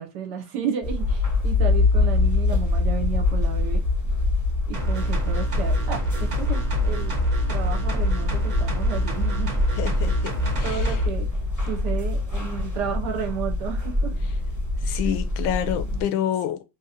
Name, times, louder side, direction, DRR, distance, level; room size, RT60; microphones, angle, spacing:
voice 1, 0.0-3.8 4.7-7.2 7.5-9.8 10.1-10.2 10.6-14.1 15.7-16.0, right 8 dB, 70° right, 1.1 m, -32 dB
sound 1, 0.8-16.0, left 3 dB, 20° left, 0.5 m, -24 dB
sound 2, 4.7-11.1 11.4-11.5, right 2 dB, 35° right, 0.7 m, -27 dB
voice 2, 9.8-11.0 14.8-16.6, left 10 dB, 85° left, 1.3 m, -28 dB
3.7 x 2.8 x 2.7 m
omnidirectional pair, 2.2 m